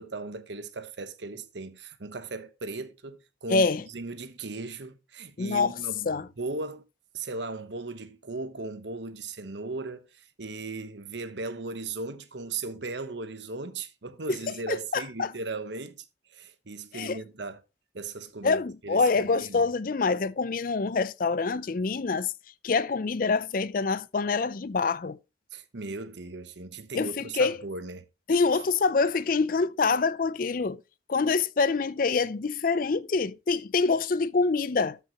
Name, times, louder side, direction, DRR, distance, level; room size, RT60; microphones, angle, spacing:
voice 1, 0.0-6.8 7.1-16.0 16.3-17.6 17.9-19.7 25.5-28.0 28.5-28.6, right 3 dB, 75° right, 1.1 m, -37 dB
voice 2, 3.5-3.8 5.4-5.7 6.1-6.3 14.3-14.4 14.7-15.3 16.9-17.2 18.4-22.3 22.6-25.2 26.9-27.6 28.3-30.8 31.1-35.0, left 4 dB, 50° left, 0.5 m, -26 dB
13.0 x 5.7 x 2.9 m
head